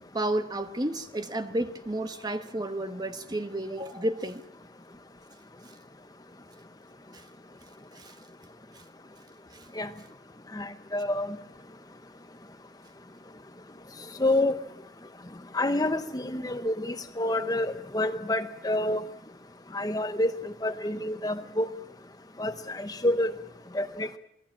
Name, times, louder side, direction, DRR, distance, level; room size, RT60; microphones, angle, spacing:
voice 1, 0.1-4.4 7.1-7.2 7.9-8.1 9.5-9.7, right 1 dB, 20° right, 1.2 m, -31 dB
voice 2, 10.5-11.4 14.2-14.6 15.5-19.0 19.7-21.7 22.4-23.3 23.7-24.2, left 1 dB, 20° left, 0.8 m, -28 dB
27.5 x 20.0 x 7.4 m
head